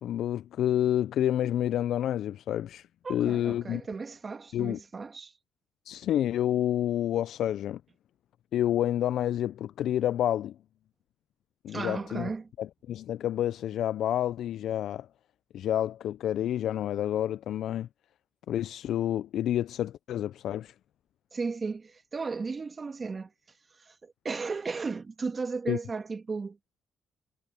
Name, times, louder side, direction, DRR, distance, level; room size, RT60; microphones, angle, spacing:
voice 1, 0.0-3.8 4.5-4.8 5.9-7.8 8.5-10.6 11.6-12.3 12.6-15.1 15.5-17.9 18.5-20.7 25.7-25.8, left 11 dB, 75° left, 0.3 m, -29 dB
voice 2, 3.0-5.3 11.7-12.5 21.3-23.3 23.8-26.6, right 4 dB, 35° right, 1.9 m, -35 dB
cardioid pair, 90°, 0 cm